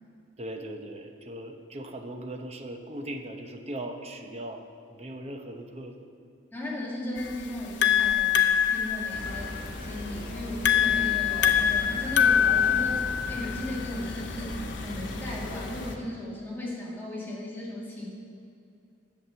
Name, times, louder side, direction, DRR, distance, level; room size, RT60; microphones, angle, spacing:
voice 1, 0.4-4.6 4.9-6.1, right 1 dB, 30° right, 4 dB, 0.8 m, -39 dB
voice 2, 6.5-8.4 8.7-13.0 13.3-18.1, left 1 dB, 10° left, -6 dB, 2.0 m, -36 dB
sound 1, 7.2-15.9, left 9 dB, 65° left, 0.6 m, -25 dB
sound 2, 9.1-15.9, left 1 dB, 50° left, 1.5 m, -38 dB
8.5 x 7.3 x 6.9 m, 2.5 s
head